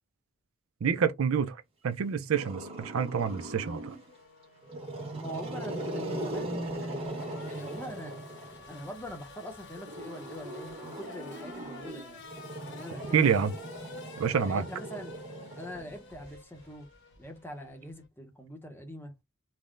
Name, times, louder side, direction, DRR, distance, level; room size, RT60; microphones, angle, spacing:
voice 1, 0.8-1.6 1.8-3.9 13.1-13.5 14.2-14.7, right 7 dB, 75° right, 0.4 m, -27 dB
Growling, 2.3-4.1 4.6-8.8 9.8-16.3, right 1 dB, 30° right, 1.2 m, -39 dB
Race car auto racing / Accelerating revving vroom, 3.3-18.1, left 3 dB, 55° left, 0.9 m, -51 dB
voice 2, 5.2-8.2 8.7-12.2 12.7-13.4 14.3-15.2 15.6-16.9 17.2-19.1, equal, 10° left, 0.7 m, -43 dB
3.4 x 2.1 x 2.4 m
head